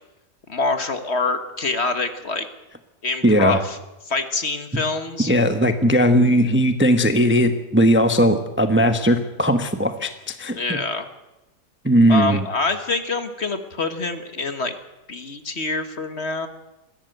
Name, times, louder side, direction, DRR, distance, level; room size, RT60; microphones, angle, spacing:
voice 1, 0.5-2.5 3.0-3.8 4.1-5.3 10.5-11.1 12.1-14.7 15.1-16.5, left 3 dB, 40° left, 8 dB, 1.7 m, -25 dB
voice 2, 3.2-3.6 5.3-10.8 11.8-12.4, equal, 10° right, 7 dB, 0.9 m, -18 dB
22.0 x 15.5 x 8.0 m, 0.98 s
omnidirectional pair, 1.7 m